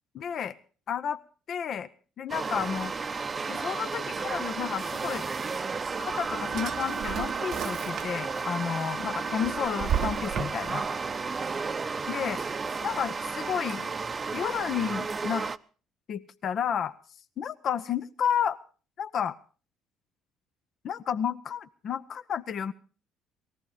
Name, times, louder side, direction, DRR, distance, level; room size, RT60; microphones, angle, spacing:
voice 1, 0.1-0.5 0.9-1.2 1.5-1.9 2.2-2.9 3.5-5.3 6.0-10.9 12.1-12.4 12.8-13.9 14.3-15.5 16.1-16.9 17.4-18.6 19.0-19.3 20.8-22.7, left 8 dB, 55° left, 12 dB, 0.8 m, -31 dB
sound 1, 2.3-15.6, right 4 dB, 35° right, 0.7 m, -33 dB
Drawer open or close, 5.9-8.4 8.8-10.9, right 9 dB, 60° right, 0.8 m, -34 dB
19.0 x 14.5 x 5.0 m, 0.39 s
hypercardioid pair, 65°, 0 cm